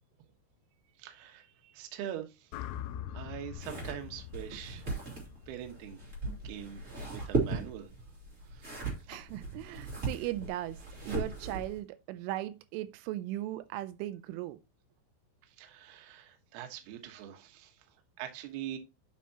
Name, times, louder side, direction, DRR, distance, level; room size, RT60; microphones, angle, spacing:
voice 1, 1.0-2.5 3.1-4.9 5.5-6.0 6.4-7.9 8.4-8.7 9.0-9.1 15.4-18.8, right 11 dB, 70° right, 2.8 m, -43 dB
sound 1, 2.5-6.7, left 11 dB, 90° left, 2.4 m, -44 dB
sound 2, 3.5-11.8, right 3 dB, 25° right, 1.9 m, -37 dB
voice 2, 9.1-10.8 11.1-14.6, right 15 dB, 90° right, 3.1 m, -37 dB
9.2 x 5.7 x 2.8 m
omnidirectional pair, 5.6 m